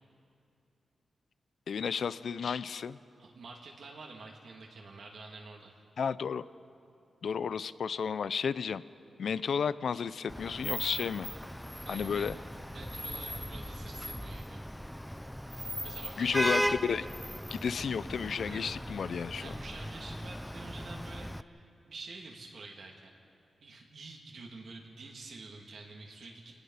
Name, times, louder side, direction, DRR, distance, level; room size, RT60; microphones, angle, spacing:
voice 1, 1.7-3.0 6.0-6.4 7.2-8.8 9.2-11.3 11.9-12.4 16.2-17.1 17.5-19.5, left 6 dB, 75° left, 16 dB, 0.6 m, -32 dB
voice 2, 3.2-5.7 11.8-12.3 12.7-14.6 15.8-16.7 18.5-18.7 19.4-23.1 23.6-26.6, right 3 dB, 75° right, -1 dB, 2.8 m, -48 dB
Vehicle horn car horn honking / Traffic noise roadway noise, 10.3-21.4, equal, 5° left, 0.6 m, -37 dB
27.5 x 19.0 x 5.8 m, 2.6 s
cardioid pair, 75°, 0 cm